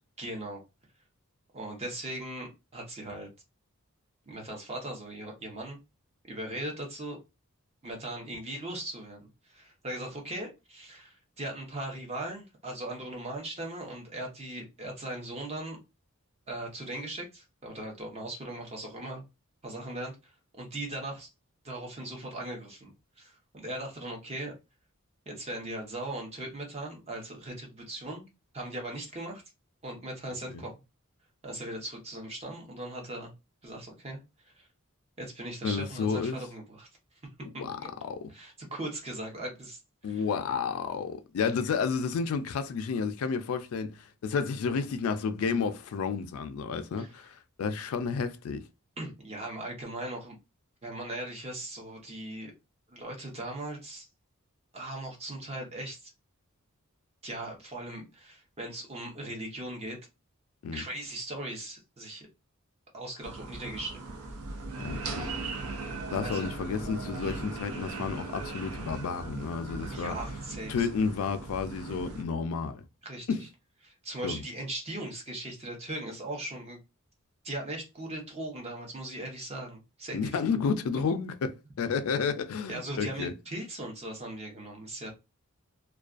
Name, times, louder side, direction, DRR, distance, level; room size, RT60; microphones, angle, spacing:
voice 1, 0.2-0.6 1.5-3.3 4.3-5.8 6.3-7.2 7.8-15.8 16.5-19.2 19.6-20.1 20.5-21.3 21.6-22.9 23.2-24.5 25.3-28.3 28.5-29.4 29.8-30.7 31.4-33.3 33.6-34.2 34.6-34.7 35.2-36.9 37.8-37.9 38.3-40.2 47.0-47.1 49.0-50.4 50.8-52.5 52.9-54.1 54.7-56.1 57.2-60.0 60.7-62.3 62.9-64.1 66.2-66.5 69.9-70.9 73.0-73.4 73.8-76.8 77.4-80.4 82.7-85.1, right 1 dB, 30° right, 0.7 m, -39 dB
voice 2, 35.6-36.4 37.6-38.3 40.0-48.6 60.6-60.8 64.8-65.3 66.1-70.2 70.7-72.8 73.3-73.5 74.2-74.4 80.1-83.3, left 5 dB, 70° left, 0.3 m, -31 dB
sound 1, 63.2-72.2, right 3 dB, 80° right, 0.5 m, -38 dB
2.3 x 2.2 x 2.4 m
head